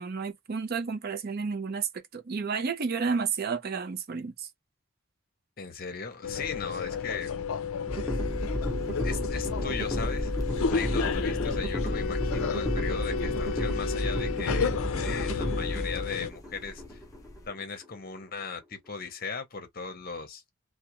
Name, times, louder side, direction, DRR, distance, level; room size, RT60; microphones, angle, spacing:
voice 1, 0.0-4.5, right 5 dB, 45° right, 0.5 m, -31 dB
voice 2, 5.6-7.3 9.0-10.3 10.7-14.7 15.0-17.0 17.5-20.4, left 5 dB, 45° left, 0.7 m, -38 dB
sound 1, 6.2-16.3, left 6 dB, 75° left, 0.4 m, -32 dB
sound 2, 7.9-17.9, equal, 5° right, 0.8 m, -32 dB
sound 3, 8.1-17.5, equal, 15° left, 0.4 m, -43 dB
2.3 x 2.1 x 2.8 m
head